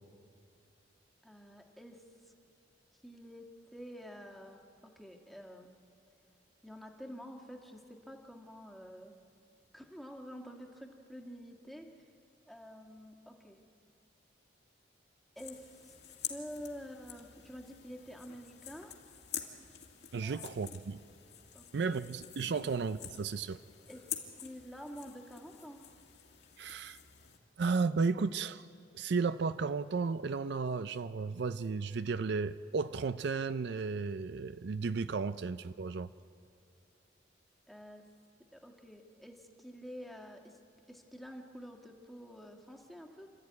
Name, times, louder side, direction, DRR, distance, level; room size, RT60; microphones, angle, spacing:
voice 1, 1.2-2.0 3.0-5.7 6.6-9.2 9.7-11.9 12.5-13.6 15.3-15.9 16.3-18.9 20.2-20.9 21.5-22.0 22.5-22.7 23.9-24.1 24.4-25.8 37.7-38.0 38.5-40.6 40.9-43.3, equal, ahead, 2 dB, 1.6 m, -48 dB
sound 1, 15.4-27.4, left 10 dB, 65° left, 2.3 m, -47 dB
voice 2, 20.1-21.0 21.7-23.6 26.6-27.0 27.6-28.6 28.9-36.1, right 4 dB, 60° right, 13 dB, 0.4 m, -34 dB
28.0 x 13.5 x 9.5 m, 2.4 s
head